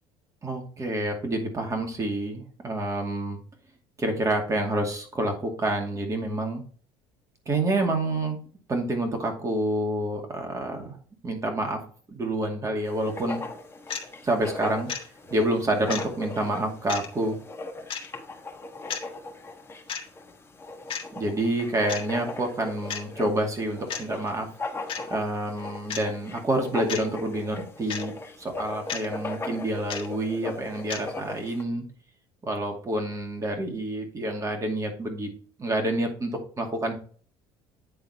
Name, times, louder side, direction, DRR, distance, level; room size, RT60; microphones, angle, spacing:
voice 1, 0.4-3.4 4.0-6.6 7.5-8.4 8.7-11.0 11.2-11.8 12.1-13.4 14.2-14.9 15.3-17.3 21.2-24.5 25.1-31.8 32.4-35.3 35.6-36.3 36.6-37.0, right 1 dB, 30° right, 3 dB, 2.3 m, -28 dB
Writing, 12.9-31.6, left 2 dB, 20° left, 1.5 m, -39 dB
sound 1, 13.9-14.1 14.9-15.1 15.9-16.0 16.9-17.1 17.9-18.1 18.9-19.1 19.9-20.1 20.9-21.0 21.9-22.1 22.9-23.0 23.9-24.0 24.9-25.0 25.9-26.1 26.9-27.1 27.9-28.0 28.9-29.1 29.9-30.1 30.9-31.0, left 7 dB, 50° left, 1.5 m, -32 dB
9.0 x 3.8 x 4.3 m, 0.42 s
supercardioid pair, 80°, 12 cm